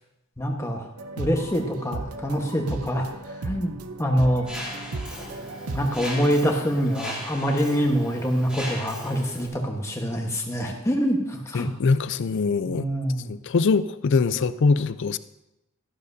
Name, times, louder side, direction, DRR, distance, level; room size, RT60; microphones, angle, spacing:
voice 1, 0.4-0.8 1.2-3.1 3.4-3.7 4.0-4.5 5.7-11.7 12.7-13.3, equal, 15° left, 1.2 m, -25 dB
sound 1, 1.0-6.3, right 3 dB, 90° right, 0.7 m, -35 dB
Mechanisms, 4.5-9.5, equal, 5° right, 2.1 m, -37 dB
voice 2, 11.5-12.9 13.3-15.2, left 4 dB, 55° left, 0.4 m, -23 dB
13.0 x 11.5 x 2.7 m
head